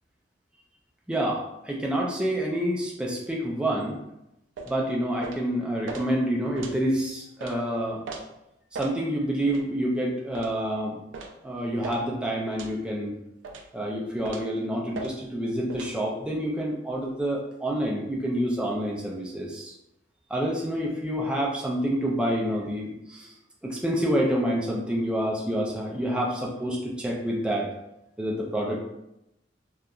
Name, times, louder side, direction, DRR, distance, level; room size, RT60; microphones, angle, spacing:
voice 1, 1.1-4.0 4.7-8.0 8.7-10.9 11.4-13.2 13.7-19.7 20.3-23.3 23.6-27.7 28.2-28.8, equal, 5° right, -3 dB, 0.3 m, -28 dB
sound 1, 4.6-4.8 5.2-5.4 5.9-6.0 6.6-6.8 7.4-7.6 8.1-8.2 8.7-9.0 9.5-9.6 10.3-10.6 11.1-11.4 11.8-12.0 12.6-12.8 13.4-13.7 14.2-14.5 14.9-15.1 15.7-15.9, right 3 dB, 90° right, 0.4 m, -37 dB
2.8 x 2.3 x 2.3 m, 0.86 s
head